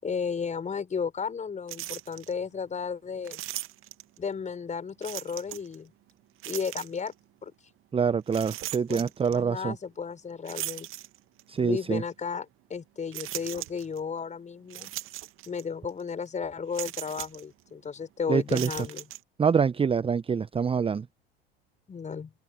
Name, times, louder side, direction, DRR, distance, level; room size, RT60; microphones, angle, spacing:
voice 1, 0.0-3.4 4.2-5.9 6.5-7.1 7.4-7.5 8.9-10.9 11.6-14.9 15.5-19.1 21.9-22.3, left 6 dB, 25° left, 7.3 m, -34 dB
sound 1, 1.7-2.3 3.2-4.2 5.0-5.7 6.4-7.1 8.3-9.4 10.5-11.5 12.1-12.2 13.1-14.0 14.7-15.6 15.9-16.0 16.7-17.4 18.4-19.2, right 16 dB, 45° right, 2.2 m, -38 dB
voice 2, 7.9-9.7 11.5-12.0 18.3-18.7 19.4-21.1, right 6 dB, 20° right, 1.2 m, -25 dB
open air
figure-of-eight pair, 70°, 30 cm